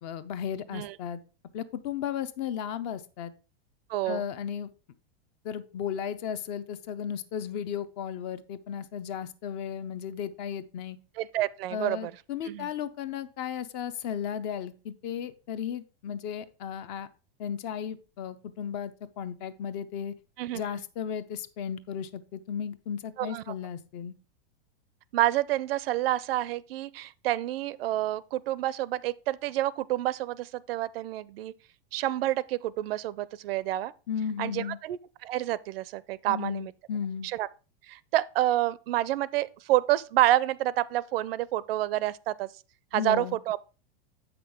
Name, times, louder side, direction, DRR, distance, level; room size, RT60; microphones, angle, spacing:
voice 1, 0.0-1.2 1.5-3.3 4.0-4.7 5.4-11.0 11.7-17.1 17.4-20.1 20.5-24.1 34.1-34.8 36.3-37.3 42.9-43.4, left 8 dB, 40° left, 0.6 m, -35 dB
voice 2, 3.9-4.3 11.2-12.1 12.5-12.7 20.4-20.6 23.2-23.4 25.1-31.5 31.9-33.9 34.4-36.7 37.2-37.5 37.9-42.5 42.9-43.6, right 14 dB, 70° right, 0.5 m, -28 dB
7.8 x 5.9 x 3.6 m
supercardioid pair, 150°, 31 cm